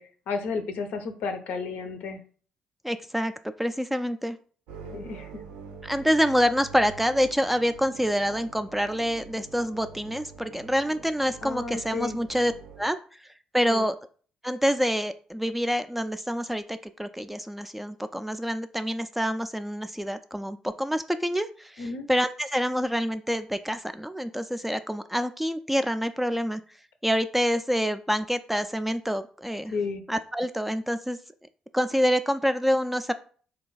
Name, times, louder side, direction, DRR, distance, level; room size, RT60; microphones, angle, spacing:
voice 1, 0.0-2.2 4.9-5.3 11.4-12.2 13.7-13.9 21.8-22.1 29.7-30.0, left 4 dB, 70° left, 6 dB, 0.6 m, -32 dB
voice 2, 2.8-3.3 3.6-4.4 5.8-12.5 12.8-13.0 13.5-13.9 14.4-26.6 27.0-29.7 30.1-31.2 31.7-33.1, equal, 5° right, 10 dB, 0.3 m, -27 dB
sound 1, 4.7-12.9, right 4 dB, 80° right, 0.6 m, -45 dB
3.3 x 2.3 x 3.8 m, 0.43 s
hypercardioid pair, 45°, 3 cm